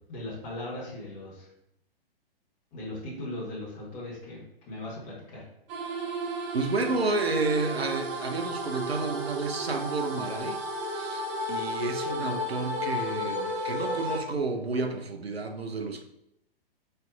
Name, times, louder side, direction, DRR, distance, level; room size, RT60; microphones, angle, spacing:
voice 1, 0.1-1.5 2.7-5.4, left 1 dB, 25° left, -6 dB, 1.2 m, -38 dB
sound 1, 5.7-14.2, equal, 30° right, 0.6 m, -33 dB
voice 2, 6.5-16.0, right 3 dB, 90° right, 5 dB, 0.6 m, -31 dB
4.4 x 2.6 x 2.3 m, 0.77 s
figure-of-eight pair, 115°, 30 cm